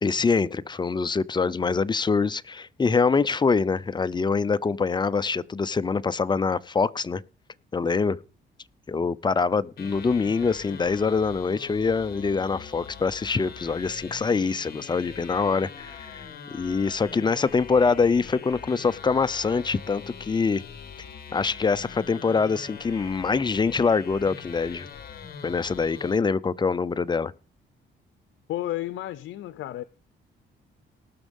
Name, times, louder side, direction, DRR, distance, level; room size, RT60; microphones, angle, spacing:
voice 1, 0.0-7.2 7.7-8.2 8.9-16.2 16.5-20.6 21.3-24.9 25.4-27.3, left 4 dB, 20° left, 0.6 m, -24 dB
sound 1, 9.8-26.2, left 7 dB, 50° left, 1.4 m, -43 dB
voice 2, 28.5-29.8, left 14 dB, 75° left, 0.7 m, -32 dB
18.5 x 6.3 x 5.4 m
cardioid pair, 90°, 20 cm